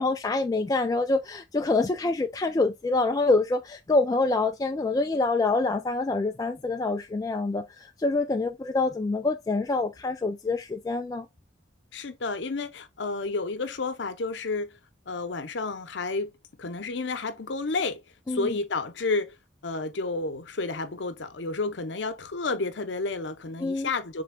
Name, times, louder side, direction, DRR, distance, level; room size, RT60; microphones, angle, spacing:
voice 1, 0.0-11.3 18.3-18.5 23.6-23.9, left 3 dB, 20° left, 0.3 m, -26 dB
voice 2, 11.9-14.8 15.1-16.3 16.6-18.0 18.3-19.3 19.6-24.2, left 3 dB, 70° left, 0.7 m, -31 dB
6.8 x 3.4 x 2.2 m
head